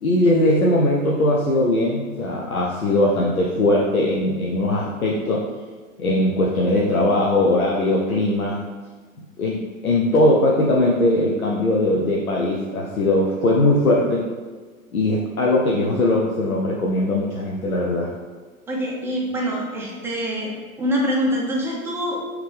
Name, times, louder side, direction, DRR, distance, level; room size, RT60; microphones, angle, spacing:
voice 1, 0.0-5.4 6.0-8.6 9.4-14.3 14.9-18.1, left 1 dB, 90° left, -3 dB, 0.6 m, -20 dB
voice 2, 18.7-20.5 20.8-22.2, equal, 5° right, -3 dB, 0.5 m, -24 dB
3.3 x 3.1 x 3.3 m, 1.4 s
figure-of-eight pair, 95°, 42 cm